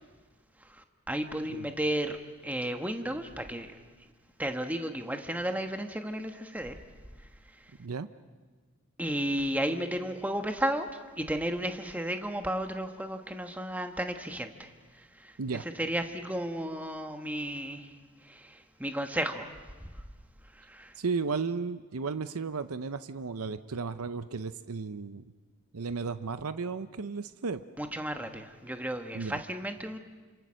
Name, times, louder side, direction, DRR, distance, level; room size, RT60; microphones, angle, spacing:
voice 1, 0.6-3.7 4.4-6.8 7.6-7.7 9.0-15.4 15.7-17.9 18.2-19.7 20.5-21.0 27.8-30.0, right 1 dB, 5° right, 6 dB, 1.2 m, -33 dB
voice 2, 21.0-25.2 25.7-27.6 29.1-29.4, right 4 dB, 85° right, 12 dB, 0.7 m, -34 dB
29.0 x 27.0 x 6.4 m, 1.4 s
head